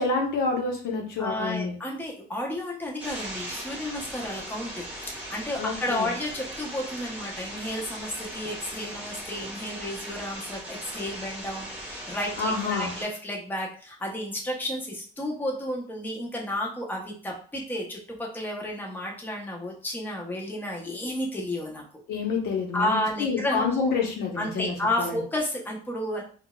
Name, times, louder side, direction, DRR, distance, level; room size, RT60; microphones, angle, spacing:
voice 1, 0.0-1.8 5.6-6.1 12.4-12.9 22.1-25.2, left 4 dB, 70° left, 1 dB, 1.0 m, -28 dB
voice 2, 1.2-21.8 22.7-23.9 24.4-26.2, left 1 dB, 10° left, -1 dB, 0.9 m, -32 dB
sound 1, 3.0-13.0, right 1 dB, 10° right, 1.3 m, -39 dB
3.8 x 2.5 x 2.3 m, 0.43 s
cardioid pair, 110°, 17 cm